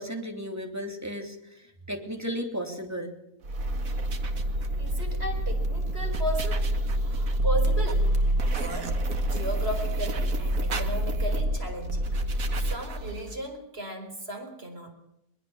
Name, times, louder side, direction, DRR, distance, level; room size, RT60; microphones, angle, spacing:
voice 1, 0.0-1.6 1.9-3.1, equal, 10° right, 3 dB, 3.3 m, -34 dB
sound 1, 3.4-13.3, right 1 dB, 70° right, 2.2 m, -27 dB
voice 2, 4.7-6.7 7.0-8.2 8.5-9.0 9.3-12.1 12.6-14.9, right 1 dB, 40° right, 4 dB, 4.8 m, -35 dB
22.0 x 21.0 x 7.2 m, 0.81 s
omnidirectional pair, 1.5 m